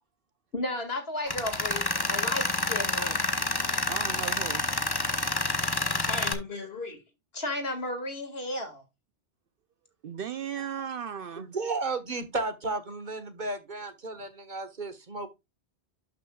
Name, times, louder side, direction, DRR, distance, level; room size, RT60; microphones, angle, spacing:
voice 1, 0.5-3.3 6.0-7.0 7.3-8.8, left 2 dB, 60° left, 2.3 m, -34 dB
Tools, 1.3-6.3, left 2 dB, 20° left, 0.9 m, -28 dB
voice 2, 3.9-4.6 10.0-11.5, right 8 dB, 60° right, 0.7 m, -36 dB
voice 3, 11.4-15.3, right 3 dB, 45° right, 1.4 m, -33 dB
12.0 x 5.9 x 2.3 m
omnidirectional pair, 1.1 m